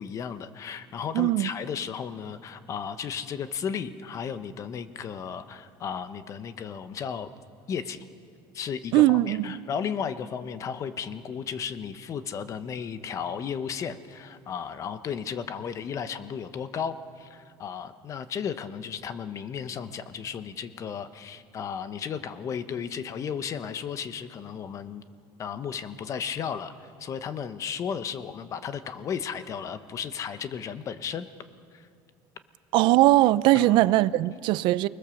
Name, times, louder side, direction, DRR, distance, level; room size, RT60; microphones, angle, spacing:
voice 1, 0.0-7.3 7.7-8.1 8.5-25.0 25.4-31.3 31.7-31.9 33.5-33.8, left 7 dB, 35° left, 1.1 m, -34 dB
voice 2, 1.1-1.5 8.9-9.6 32.7-34.9, right 16 dB, 60° right, 0.6 m, -20 dB
29.5 x 20.5 x 7.2 m
cardioid pair, 135°, 9 cm